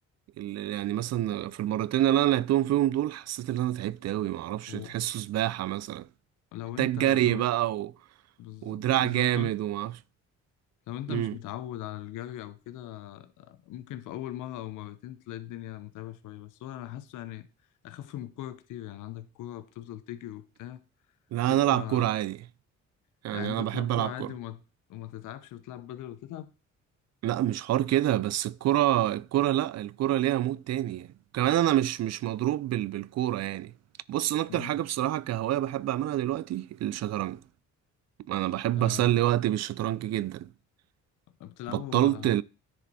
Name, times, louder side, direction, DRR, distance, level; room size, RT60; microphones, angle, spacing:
voice 1, 0.4-6.1 6.8-7.9 8.6-9.9 11.1-11.4 21.3-22.4 23.2-24.3 27.2-33.7 34.1-37.4 38.3-40.5 41.7-42.4, right 13 dB, 60° right, 0.5 m, -27 dB
voice 2, 6.5-7.5 8.4-9.5 10.9-17.5 17.8-20.8 21.5-22.1 23.3-24.6 24.9-26.5 34.5-34.8 38.7-39.2 41.4-42.3, left 13 dB, 90° left, 0.9 m, -40 dB
10.0 x 5.0 x 4.2 m
cardioid pair, 90°, 30 cm